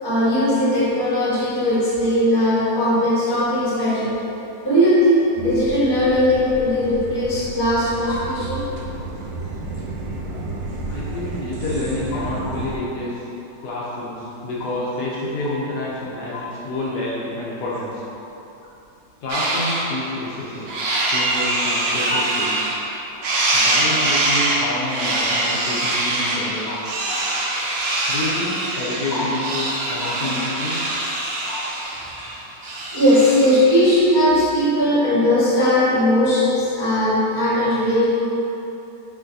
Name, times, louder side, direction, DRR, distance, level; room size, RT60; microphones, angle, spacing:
voice 1, 0.0-4.2 4.6-8.6 16.3-16.4 20.9-21.0 22.1-22.2 23.9-24.0 26.7-26.8 27.1-27.2 29.1-29.2 30.0-30.1 31.4-31.6 32.9-38.0, left 1 dB, 20° left, -9 dB, 0.8 m, -19 dB
sound 1, 5.4-12.8, right 3 dB, 90° right, 1.3 m, -32 dB
voice 2, 10.9-13.2 13.6-18.0 19.2-20.7 21.1-22.5 23.5-26.7 28.1-30.9, left 2 dB, 70° left, -6 dB, 1.2 m, -28 dB
sound 2, 19.3-19.9 20.3-22.9 23.2-33.7, right 2 dB, 65° right, 0.9 m, -23 dB
4.7 x 3.8 x 2.6 m, 2.9 s
omnidirectional pair, 1.9 m